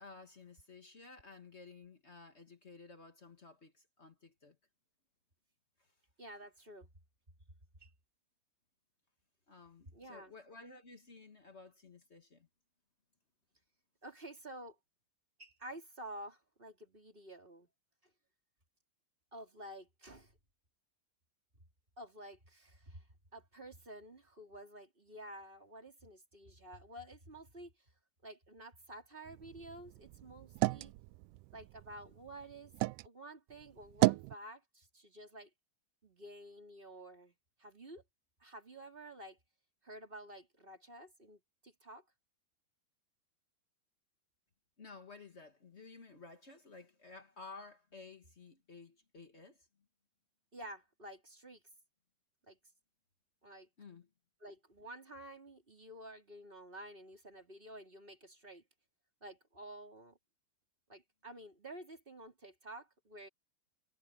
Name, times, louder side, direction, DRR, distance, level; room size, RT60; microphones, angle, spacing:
voice 1, 0.0-4.6 5.8-5.9 9.5-12.5 44.8-49.7 53.8-54.1, left 4 dB, 55° left, 0.7 m, -54 dB
voice 2, 6.2-6.9 7.8-7.9 9.9-10.3 14.0-14.8 15.4-17.7 19.3-20.3 22.0-23.0 23.3-27.7 28.2-30.9 31.5-32.7 33.0-35.5 36.0-38.0 38.4-39.4 39.8-42.0 50.5-51.6 52.5-52.6 53.4-53.7 54.4-58.6 59.2-60.2 60.9-63.3, right 1 dB, 15° right, 3.7 m, -51 dB
sound 1, 29.3-33.1 33.5-34.4, right 21 dB, 85° right, 1.8 m, -35 dB
omnidirectional pair, 4.1 m